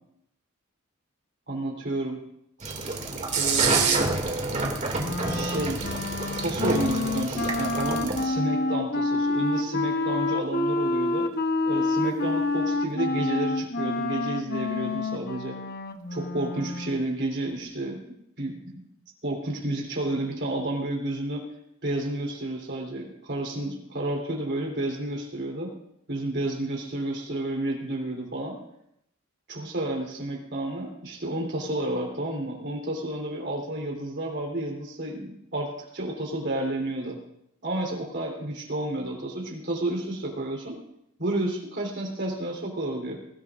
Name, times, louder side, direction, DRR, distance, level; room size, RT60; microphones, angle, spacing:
voice 1, 1.5-2.2 3.3-4.1 5.3-5.9 6.4-11.3 11.7-15.6 16.1-18.0 18.4-18.8 19.2-21.5 21.8-25.7 26.1-28.6 29.5-37.2 37.6-40.8 41.2-43.2, right 1 dB, 55° right, -1 dB, 3.6 m, -31 dB
sound 1, 2.6-8.2, right 3 dB, 35° right, 2.4 m, -27 dB
Wind instrument woodwind instrument, 5.0-17.1, left 2 dB, 50° left, 1.0 m, -28 dB
23.0 x 16.0 x 2.5 m, 0.77 s
head